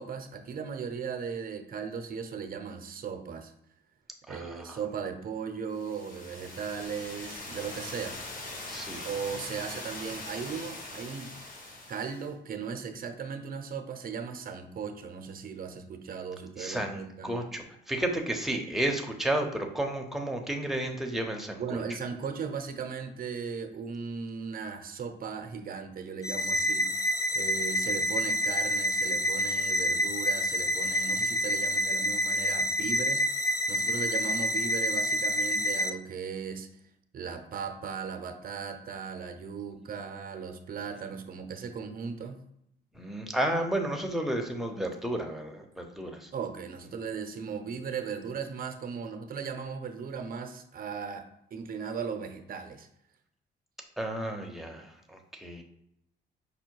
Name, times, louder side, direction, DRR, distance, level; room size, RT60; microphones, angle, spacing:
voice 1, 0.0-3.5 4.3-8.2 9.0-11.3 11.9-17.4 21.6-33.3 33.7-36.7 37.1-42.4 46.3-52.9, right 6 dB, 45° right, 7 dB, 0.7 m, -37 dB
voice 2, 4.3-4.8 8.7-9.1 16.6-21.8 42.9-46.3 54.0-55.6, right 1 dB, ahead, 3 dB, 0.8 m, -32 dB
sound 1, 5.7-12.3, left 2 dB, 45° left, 1.5 m, -42 dB
sound 2, 26.2-35.9, equal, 15° left, 0.4 m, -28 dB
5.3 x 2.2 x 4.6 m, 0.78 s
cardioid pair, 90°, 20 cm